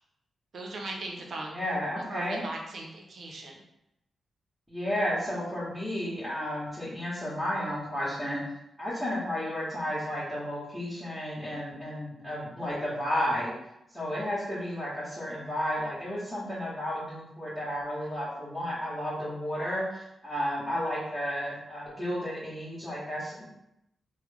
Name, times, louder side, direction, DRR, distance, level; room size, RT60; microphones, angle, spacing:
voice 1, 0.5-1.5 1.9-3.5, right 2 dB, 65° right, 0 dB, 0.7 m, -38 dB
voice 2, 1.5-2.4 4.7-8.4 8.8-13.5 13.9-23.5, equal, 5° right, -11 dB, 1.4 m, -32 dB
3.0 x 2.2 x 3.3 m, 0.84 s
cardioid pair, 60°, 0 cm